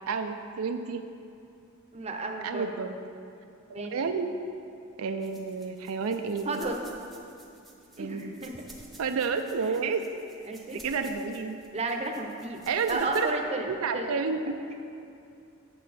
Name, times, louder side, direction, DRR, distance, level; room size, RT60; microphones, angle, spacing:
voice 1, 0.1-1.0 2.4-3.0 3.7-4.3 5.0-6.6 8.0-8.4 9.0-10.0 10.8-11.6 12.7-13.3 13.6-14.6, right 5 dB, 85° right, 6 dB, 0.4 m, -30 dB
voice 2, 1.9-2.7 3.7-3.9 6.4-6.8 8.0-8.6 10.5-10.8 11.7-12.6 12.9-13.7 13.9-14.1, right 2 dB, 30° right, 2 dB, 0.7 m, -32 dB
sound 1, 5.2-13.3, right 1 dB, ahead, 0.9 m, -53 dB
8.4 x 7.0 x 4.2 m, 2.6 s
head